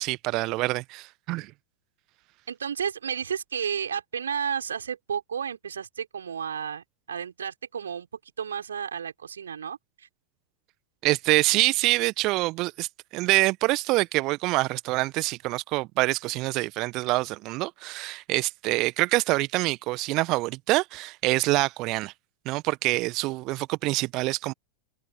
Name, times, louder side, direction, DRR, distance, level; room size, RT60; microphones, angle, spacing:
voice 1, 0.0-1.5 11.0-22.1 22.4-24.5, right 21 dB, 40° right, 1.5 m, -26 dB
voice 2, 2.5-8.1 8.4-9.8, right 7 dB, 70° right, 5.6 m, -32 dB
figure-of-eight pair, 90°, 0 cm